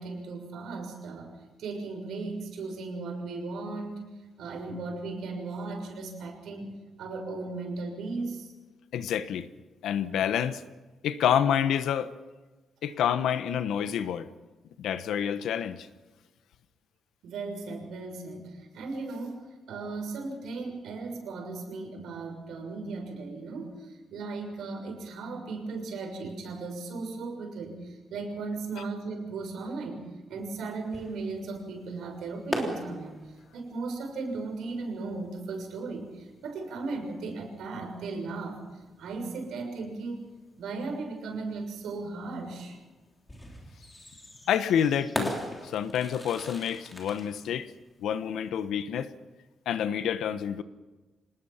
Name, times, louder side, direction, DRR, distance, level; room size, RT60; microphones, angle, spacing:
voice 1, 0.0-4.0 4.4-8.5 17.2-30.0 30.3-33.2 33.5-38.6 39.0-40.3 40.6-42.8, right 3 dB, 80° right, 2 dB, 6.7 m, -36 dB
voice 2, 8.9-9.5 9.8-10.6 11.0-12.1 12.8-14.3 14.8-15.9 28.8-28.9 44.5-45.3 45.6-47.7 48.0-49.1 49.7-50.6, left 9 dB, 85° left, 11 dB, 1.2 m, -28 dB
sound 1, 30.4-48.5, left 1 dB, 10° left, 3.4 m, -41 dB
26.5 x 20.0 x 5.8 m, 1.2 s
cardioid pair, 165°, 0 cm